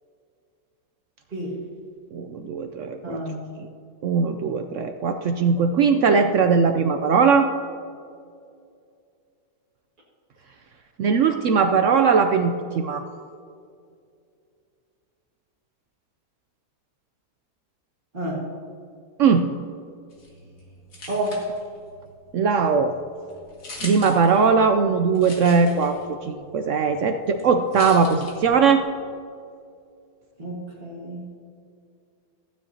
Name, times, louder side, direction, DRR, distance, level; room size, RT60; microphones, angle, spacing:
voice 1, 2.1-3.2 4.0-7.5 11.0-13.0 19.2-19.5 22.3-22.9 23.8-28.8, right 5 dB, 70° right, 7 dB, 0.7 m, -20 dB
voice 2, 3.0-3.5 18.1-18.4 21.1-21.4 30.4-31.3, right 1 dB, 30° right, -7 dB, 1.8 m, -30 dB
sound 1, 20.1-28.9, left 1 dB, 70° left, 2.5 m, -44 dB
15.0 x 9.6 x 2.8 m, 2.4 s
omnidirectional pair, 1.7 m